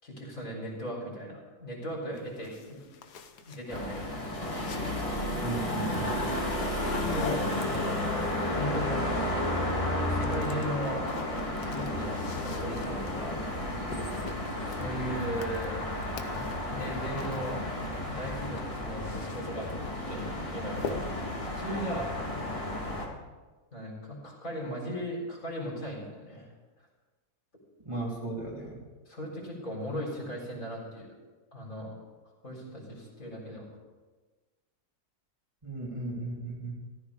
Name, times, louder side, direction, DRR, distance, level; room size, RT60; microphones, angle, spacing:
voice 1, 0.0-2.8 3.5-4.3 6.9-9.2 10.0-11.0 11.6-13.4 14.6-15.8 16.3-17.6 18.1-19.7 20.1-21.0 21.4-22.1 23.7-26.5 29.1-31.1 31.5-31.9 32.4-33.7, equal, 55° left, -3 dB, 4.6 m, -37 dB
sound 1, 2.2-8.2 9.3-9.8 10.1-18.0 18.3-19.7 20.1-20.4 20.7-21.4, left 5 dB, 80° left, 1.6 m, -44 dB
sound 2, 3.7-23.1, left 1 dB, 20° left, 2.3 m, -32 dB
voice 2, 5.4-6.3 27.8-28.8 35.6-36.7, right 3 dB, 20° right, -6 dB, 3.1 m, -35 dB
15.0 x 13.5 x 5.0 m, 1.3 s
omnidirectional pair, 1.7 m